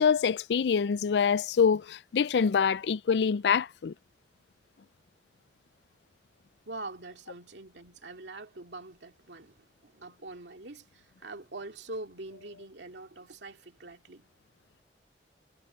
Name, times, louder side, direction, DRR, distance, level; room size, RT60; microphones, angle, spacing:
voice 1, 0.0-3.9, left 6 dB, 75° left, 0.4 m, -25 dB
voice 2, 6.7-14.3, right 2 dB, 90° right, 2.3 m, -44 dB
head